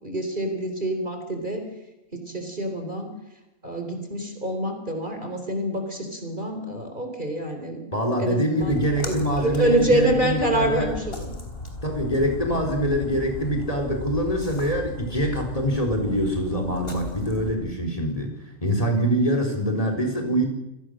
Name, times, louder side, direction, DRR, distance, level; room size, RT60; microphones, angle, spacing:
voice 1, 0.0-1.6 2.1-3.1 3.6-7.8 8.2-11.3 12.6-12.7, right 1 dB, 35° right, 5 dB, 4.1 m, -26 dB
voice 2, 7.9-10.9 11.8-18.3 18.6-20.4, equal, 25° left, 3 dB, 4.2 m, -24 dB
Splash splatter, 8.6-17.5, left 2 dB, 40° left, 3.9 m, -36 dB
27.5 x 19.0 x 6.5 m, 0.92 s
omnidirectional pair, 1.5 m